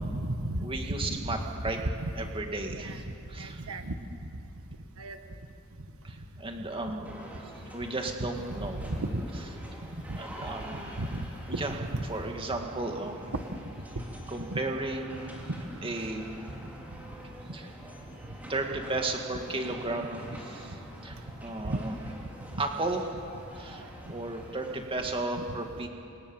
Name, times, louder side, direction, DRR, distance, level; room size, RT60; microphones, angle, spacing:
voice 1, 0.0-0.6 0.9-1.2 2.0-2.1 2.7-3.0 3.4-3.9 5.0-5.2 8.8-9.2 10.1-10.2 11.0-11.2 11.5-12.0 14.5-14.6 21.6-21.8 25.4-25.5, right 1 dB, 70° right, 7 dB, 1.3 m, -33 dB
voice 2, 0.6-1.8 2.1-3.0 3.3-3.6 6.0-8.9 10.2-11.0 11.6-11.8 12.1-13.3 14.3-15.5 15.8-16.3 17.5-17.7 18.5-21.9 22.6-23.2 23.5-25.9, right 2 dB, 25° right, 3 dB, 2.2 m, -34 dB
sound 1, 7.0-24.8, equal, 10° right, 4.4 m, -47 dB
27.0 x 26.0 x 7.3 m, 2.8 s
head